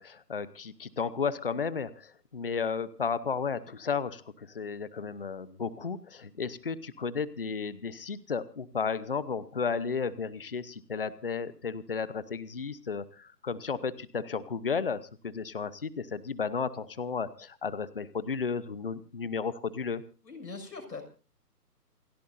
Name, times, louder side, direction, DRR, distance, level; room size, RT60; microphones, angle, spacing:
voice 1, 0.0-20.0, left 5 dB, 35° left, 15 dB, 0.9 m, -33 dB
voice 2, 20.2-21.0, left 4 dB, 85° left, 5 dB, 6.4 m, -41 dB
28.5 x 12.5 x 2.7 m, 0.37 s
hypercardioid pair, 175°, 49 cm